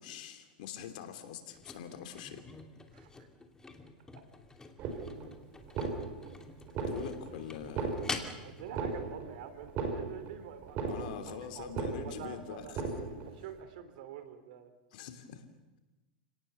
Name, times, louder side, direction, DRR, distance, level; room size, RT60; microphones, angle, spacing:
voice 1, 0.0-2.4 6.8-8.0 10.9-13.1 14.9-15.5, left 9 dB, 70° left, 8 dB, 3.1 m, -44 dB
sound 1, 1.5-8.9 9.4-9.5, left 3 dB, 15° left, 2.6 m, -46 dB
voice 2, 2.9-3.3 8.4-12.8 13.4-14.7, right 9 dB, 70° right, 10 dB, 3.3 m, -46 dB
sound 2, 4.8-5.3 5.6-6.3 6.7-7.3 7.6-8.3 8.7-9.3 9.6-10.3 10.6-11.3 11.6-12.3 12.7-13.3, right 4 dB, 45° right, 5.3 m, -36 dB
30.0 x 18.5 x 7.1 m, 1.1 s
hypercardioid pair, 115°, 5 cm